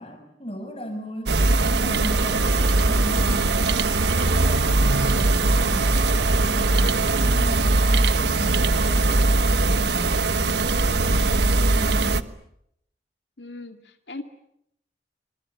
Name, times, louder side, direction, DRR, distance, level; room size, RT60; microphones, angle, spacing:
voice 1, 0.0-3.7 4.0-6.0 6.5-12.4, equal, 35° left, 6 dB, 6.8 m, -37 dB
sound 1, 1.3-12.2, right 2 dB, 80° right, 1.2 m, -20 dB
sound 2, 2.1-7.5, right 1 dB, 10° right, 1.3 m, -39 dB
sound 3, 3.4-10.2, right 2 dB, 40° right, 2.8 m, -44 dB
voice 2, 13.4-14.2, left 2 dB, 85° left, 6 dB, 2.2 m, -38 dB
27.5 x 26.0 x 8.2 m, 0.76 s
head